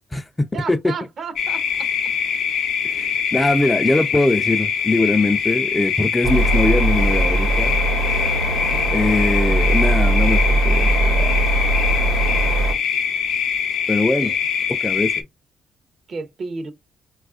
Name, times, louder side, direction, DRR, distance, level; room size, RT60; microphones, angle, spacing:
voice 1, 0.5-1.9 8.7-9.1 14.2-14.3 16.1-16.7, right 4 dB, 50° right, 0.6 m, -33 dB
sound 1, 1.4-15.2, left 7 dB, 75° left, 0.5 m, -23 dB
voice 2, 2.8-7.7 8.9-11.3 13.9-14.4 14.8-15.1, left 2 dB, 15° left, 0.3 m, -21 dB
sound 2, 6.2-12.7, right 2 dB, 85° right, 1.0 m, -20 dB
4.0 x 2.3 x 2.3 m
cardioid pair, 90°, 0 cm